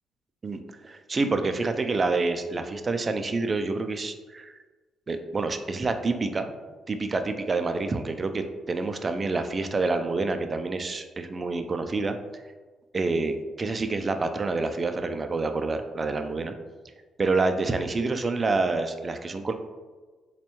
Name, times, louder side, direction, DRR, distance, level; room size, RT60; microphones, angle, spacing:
voice 1, 0.4-4.5 5.1-6.5 6.9-12.2 12.9-16.5 17.2-19.5, right 3 dB, 30° right, 7 dB, 0.3 m, -27 dB
4.2 x 2.2 x 2.9 m, 1.3 s
cardioid pair, 90°, 0 cm